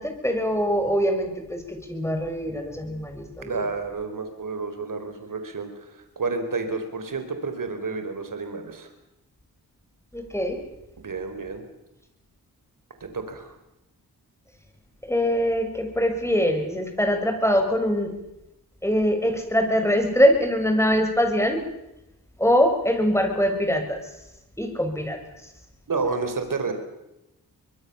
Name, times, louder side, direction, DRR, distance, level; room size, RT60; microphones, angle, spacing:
voice 1, 0.0-3.6 10.1-10.6 15.0-18.1 18.8-21.6 22.4-24.0 24.6-25.2, equal, 5° left, 5 dB, 6.7 m, -23 dB
voice 2, 3.4-8.9 11.0-11.7 13.0-13.5 25.9-26.7, right 4 dB, 55° right, 7 dB, 4.9 m, -30 dB
24.0 x 22.0 x 7.2 m, 0.91 s
cardioid pair, 55°, 38 cm